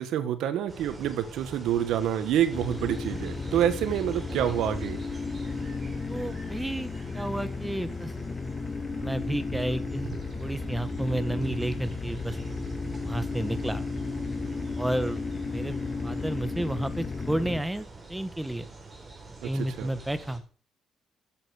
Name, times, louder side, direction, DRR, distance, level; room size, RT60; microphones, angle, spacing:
voice 1, 0.0-5.0 19.4-19.9, right 10 dB, 85° right, 1.6 m, -27 dB
sound 1, 0.7-20.4, right 2 dB, 25° right, 4.8 m, -44 dB
sound 2, 2.5-17.6, left 4 dB, 35° left, 2.5 m, -34 dB
voice 2, 6.1-8.1 9.0-10.1 10.4-12.4 13.0-13.8 14.8-15.2 15.5-15.7 16.0-18.7 19.4-20.4, right 1 dB, 10° right, 1.3 m, -31 dB
13.0 x 7.8 x 6.6 m
cardioid pair, 90°, 0 cm